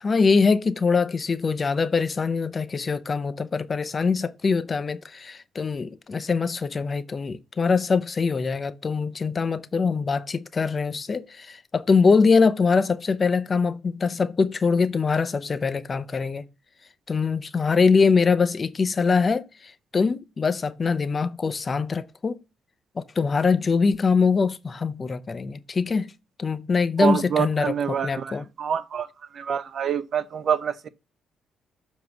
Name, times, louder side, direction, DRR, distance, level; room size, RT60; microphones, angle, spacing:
voice 1, 0.0-16.4 17.1-22.4 23.0-26.1 26.4-28.4, left 4 dB, 35° left, 0.6 m, -23 dB
voice 2, 27.0-29.1 29.3-30.9, right 7 dB, 55° right, 0.5 m, -26 dB
7.1 x 3.0 x 6.0 m
cardioid pair, 90°, 0 cm